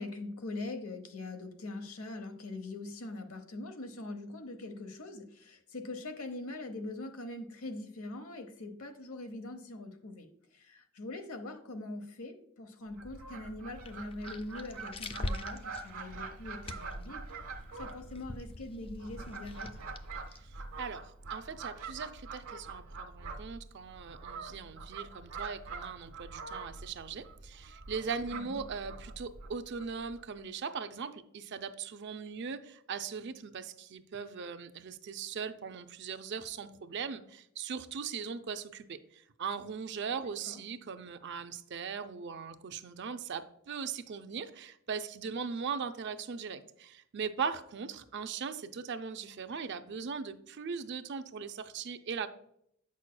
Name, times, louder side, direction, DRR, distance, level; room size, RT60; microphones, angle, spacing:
voice 1, 0.0-10.3 10.5-19.8 28.3-28.6 40.4-40.6, left 2 dB, 80° left, 7 dB, 0.9 m, -42 dB
Fowl, 12.9-30.2, right 4 dB, 75° right, 1.0 m, -45 dB
sound 1, 13.7-21.0, left 2 dB, 25° left, 0.4 m, -44 dB
voice 2, 20.8-52.3, right 6 dB, 55° right, 9 dB, 0.5 m, -39 dB
8.4 x 6.2 x 2.2 m, 0.70 s
head